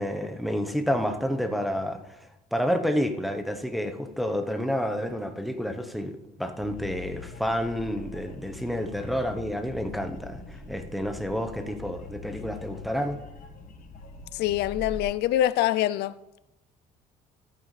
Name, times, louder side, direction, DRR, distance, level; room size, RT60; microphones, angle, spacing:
voice 1, 0.0-2.2 2.5-13.2, equal, ahead, 0.9 m, -29 dB
sound 1, 6.6-15.0, left 3 dB, 55° left, 1.6 m, -43 dB
voice 2, 14.3-16.2, left 13 dB, 75° left, 0.4 m, -25 dB
13.0 x 9.1 x 3.3 m
cardioid pair, 110°, 17 cm